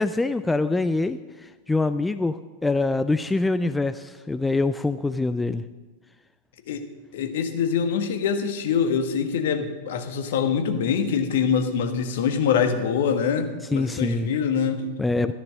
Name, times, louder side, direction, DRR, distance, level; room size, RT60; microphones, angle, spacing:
voice 1, 0.0-5.6 13.7-14.3 15.0-15.3, left 3 dB, 10° left, 12 dB, 0.4 m, -24 dB
voice 2, 7.1-14.9, left 6 dB, 55° left, 7 dB, 1.5 m, -24 dB
13.5 x 11.0 x 6.3 m, 1.3 s
figure-of-eight pair, 90°, 0 cm